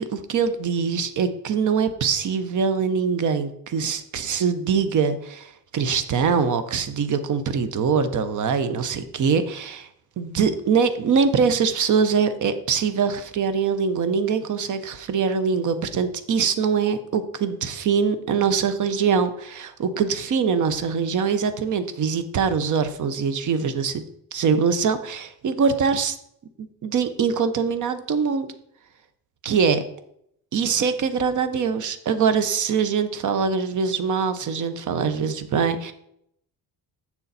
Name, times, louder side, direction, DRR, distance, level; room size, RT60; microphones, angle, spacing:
voice 1, 0.0-9.9 10.2-24.0 24.3-26.2 26.6-28.5 29.4-29.8 30.5-35.9, right 6 dB, 45° right, 11 dB, 0.8 m, -23 dB
7.1 x 6.8 x 4.1 m, 0.73 s
cardioid pair, 155°, 42 cm